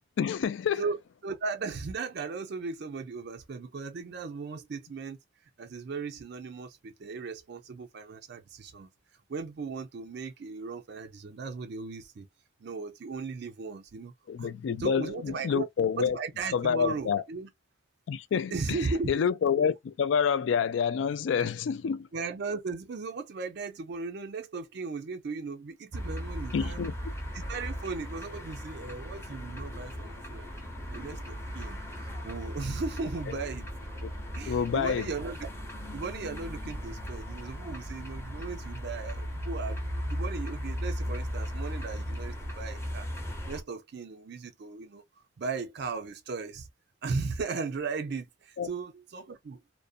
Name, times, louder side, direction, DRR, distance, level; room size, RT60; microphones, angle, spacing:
voice 1, 0.2-0.8 14.3-16.2 16.5-17.2 18.1-18.5 19.1-22.1 26.5-26.9 34.5-35.1 48.6-48.7, left 7 dB, 65° left, 0.3 m, -27 dB
voice 2, 1.2-5.2 5.6-8.9 9.3-12.3 12.6-14.1 14.4-14.5 14.8-15.7 16.0-17.5 18.5-19.3 22.1-26.9 27.3-30.5 30.9-31.8 32.2-33.7 34.3-35.5 35.9-39.8 40.1-43.1 43.5-45.0 45.4-46.7 47.0-49.6, right 4 dB, 55° right, 0.4 m, -37 dB
sound 1, 25.9-43.6, equal, 10° left, 0.7 m, -37 dB
2.5 x 2.1 x 2.4 m
head